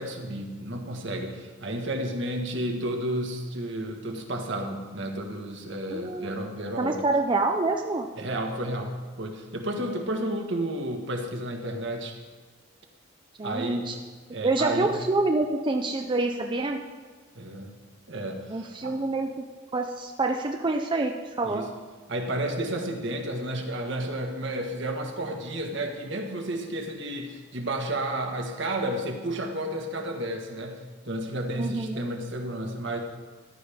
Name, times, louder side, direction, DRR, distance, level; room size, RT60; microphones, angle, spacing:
voice 1, 0.0-7.0 8.2-12.2 13.4-13.9 14.3-14.9 17.4-17.7 18.1-19.0 21.4-21.7 22.1-30.8 31.1-33.0, right 1 dB, 65° right, 2 dB, 1.6 m, -32 dB
voice 2, 5.9-6.4 6.8-8.1 13.4-14.0 14.4-16.8 18.5-19.5 19.7-21.6 31.6-32.1, right 2 dB, 25° right, 3 dB, 0.5 m, -27 dB
14.5 x 11.5 x 3.6 m, 1.5 s
head